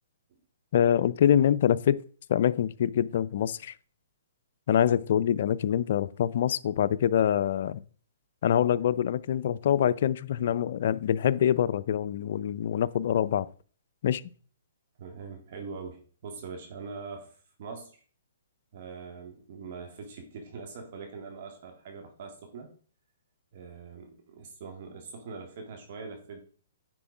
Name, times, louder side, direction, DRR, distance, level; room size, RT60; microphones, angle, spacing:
voice 1, 0.7-2.0 2.3-3.7 4.7-7.8 8.4-13.5 14.0-14.2, left 9 dB, 60° left, 0.5 m, -25 dB
voice 2, 15.0-18.0 18.7-22.7 23.5-26.4, right 5 dB, 50° right, 1.8 m, -42 dB
9.8 x 4.4 x 4.9 m
hypercardioid pair, 145°, 0 cm